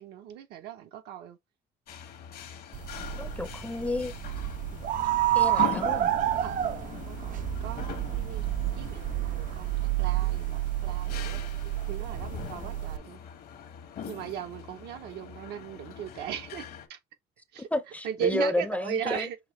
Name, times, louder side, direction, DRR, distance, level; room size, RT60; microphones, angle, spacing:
voice 1, 0.0-1.4 4.7-4.9 6.4-8.4 8.8-11.4 11.9-13.2 14.1-17.0 17.5-17.7 18.0-19.4, right 9 dB, 80° right, 0.8 m, -37 dB
sound 1, 1.9-16.9, left 8 dB, 65° left, 1.1 m, -42 dB
sound 2, 2.7-13.0, right 13 dB, 50° right, 0.4 m, -29 dB
voice 2, 3.2-4.1 5.3-6.1 17.7-19.3, left 1 dB, 10° left, 0.5 m, -31 dB
6.2 x 2.6 x 3.1 m
cardioid pair, 110°, 17 cm